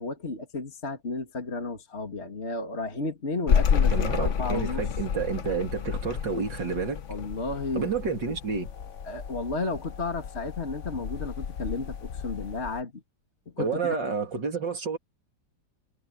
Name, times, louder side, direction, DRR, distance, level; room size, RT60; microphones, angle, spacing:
voice 1, 0.0-4.8 7.1-7.9 9.1-13.0 13.6-14.0, left 3 dB, 35° left, 2.8 m, -33 dB
sound 1, 3.5-12.8, left 7 dB, 55° left, 0.9 m, -30 dB
voice 2, 3.9-7.0 7.7-8.7 13.6-15.0, right 5 dB, 65° right, 3.5 m, -29 dB
omnidirectional pair, 2.1 m